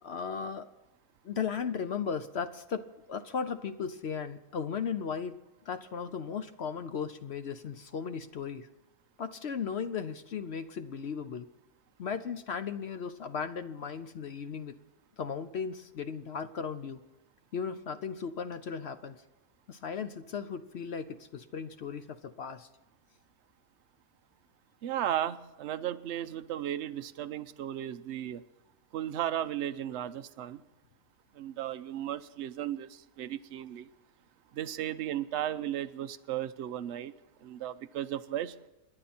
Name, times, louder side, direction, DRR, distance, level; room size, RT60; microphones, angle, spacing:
voice 1, 0.0-0.7 1.2-5.4 5.7-8.7 9.2-11.5 12.0-14.8 15.2-17.0 17.5-19.2 19.7-22.7, left 6 dB, 55° left, 10 dB, 0.8 m, -36 dB
voice 2, 24.8-28.4 28.9-30.6 31.3-33.9 34.5-37.1 37.4-38.5, right 11 dB, 55° right, 10 dB, 0.8 m, -35 dB
27.5 x 11.0 x 4.3 m, 1.0 s
omnidirectional pair, 1.6 m